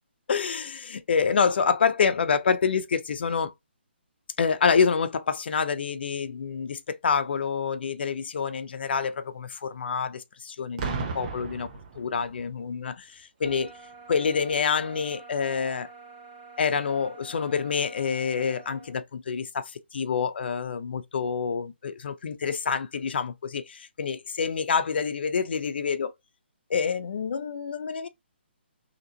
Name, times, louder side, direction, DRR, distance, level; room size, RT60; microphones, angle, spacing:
voice 1, 0.3-3.5 4.4-11.7 12.0-12.9 13.4-13.7 14.1-15.9 16.6-26.1 26.7-28.1, left 6 dB, 60° left, 0.7 m, -27 dB
Boom, 10.8-12.5 13.4-13.7, right 5 dB, 40° right, 0.9 m, -34 dB
sound 1, 13.4-19.0, right 4 dB, 20° right, 1.2 m, -48 dB
3.8 x 2.9 x 2.8 m
hypercardioid pair, 155°, 6 cm